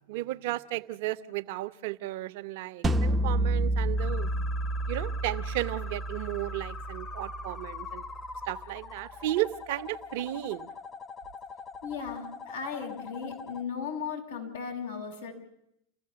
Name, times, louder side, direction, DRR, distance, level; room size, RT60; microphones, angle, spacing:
voice 1, 0.1-4.4 4.9-8.0 8.5-10.7, right 16 dB, 60° right, 1.0 m, -34 dB
sound 1, 2.8-7.9, right 1 dB, 20° right, 0.8 m, -30 dB
sound 2, 4.0-13.6, left 4 dB, 25° left, 1.3 m, -43 dB
voice 2, 11.8-15.3, left 6 dB, 80° left, 6.2 m, -36 dB
29.0 x 15.0 x 7.0 m
hypercardioid pair, 110°, 0 cm